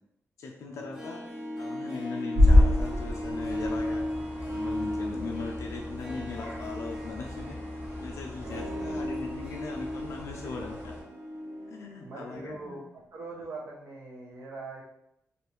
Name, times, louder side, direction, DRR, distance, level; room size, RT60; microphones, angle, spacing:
voice 1, 0.4-1.2 1.6-4.1 4.5-7.6 8.0-10.9 11.7-12.8, left 4 dB, 75° left, 1 dB, 0.4 m, -39 dB
Harp, 0.8-11.8 12.0-12.1, left 1 dB, 10° right, 0.7 m, -36 dB
sound 1, 2.3-11.0, left 1 dB, 50° right, 1.1 m, -28 dB
voice 2, 8.4-9.0 12.0-14.8, right 3 dB, 70° right, -3 dB, 0.9 m, -43 dB
Bowed string instrument, 8.4-13.0 13.4-13.5, right 3 dB, 85° right, 0.5 m, -48 dB
3.3 x 2.6 x 2.9 m, 0.79 s
wide cardioid pair, 175°, 5 cm